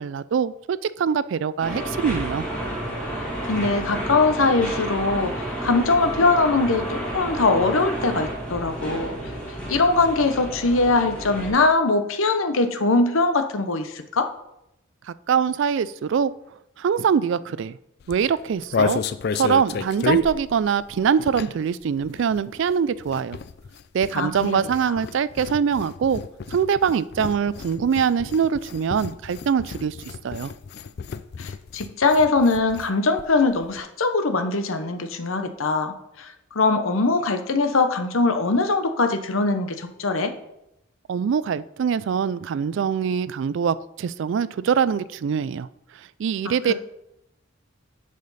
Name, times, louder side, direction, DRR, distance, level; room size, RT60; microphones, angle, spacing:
voice 1, 0.0-2.4 15.1-16.3 16.8-17.8 18.1-19.0 19.3-23.4 23.9-26.2 26.5-30.5 41.1-45.7 46.2-46.7, right 7 dB, 60° right, 17 dB, 0.3 m, -23 dB
sound 1, 1.6-11.5, right 1 dB, 5° left, 2.6 m, -31 dB
voice 2, 3.1-9.2 9.7-14.3 24.1-24.6 31.4-40.3, left 3 dB, 75° left, 8 dB, 0.8 m, -22 dB
sound 2, 18.0-21.7 22.0-32.9 33.2-33.3 33.5-33.8, left 5 dB, 50° left, 0.3 m, -32 dB
10.5 x 5.0 x 4.1 m, 0.84 s
head